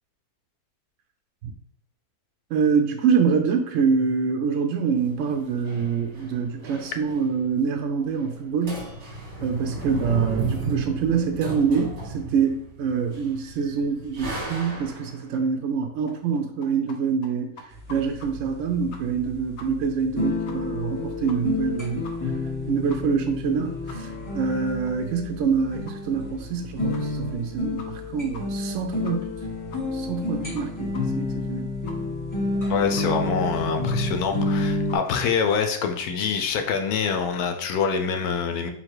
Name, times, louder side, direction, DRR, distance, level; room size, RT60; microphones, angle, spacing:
voice 1, 2.5-8.9 9.4-17.6 17.9-22.1 22.7-29.4 29.9-31.7, right 6 dB, 65° right, 4 dB, 0.8 m, -25 dB
sound 1, 4.9-7.5 7.7-7.8 8.0-8.4 8.6-15.2, right 3 dB, 50° right, 1.7 m, -34 dB
sound 2, 16.1-17.0 17.2-17.3 17.6-18.3 18.6-18.7 18.9-19.3 19.6-19.7 20.0-20.1 20.5-20.6 20.9-21.0 21.3-21.6 22.0-22.1 22.5-22.6 22.9-23.0 23.4-23.5 23.9-24.0 24.4-24.5 24.9-25.0 25.3-25.4 25.9-26.0 26.4-26.5 26.9-27.0 27.4-27.5 27.8-28.1 28.3-28.4 28.7-28.8 29.0-29.4 29.7-29.8 30.2-30.3 30.5-30.6 30.9-31.0 31.3-31.4 31.9-32.0 32.3-32.4 33.0-33.1 33.4-33.5 33.9-34.0 34.4-34.5 34.9-35.0, left 4 dB, 60° left, 0.8 m, -44 dB
sound 3, 17.7-35.0, left 2 dB, 15° left, 1.3 m, -30 dB
voice 2, 32.7-38.7, left 6 dB, 80° left, 5 dB, 1.1 m, -25 dB
3.8 x 2.8 x 4.6 m, 0.67 s
omnidirectional pair, 1.6 m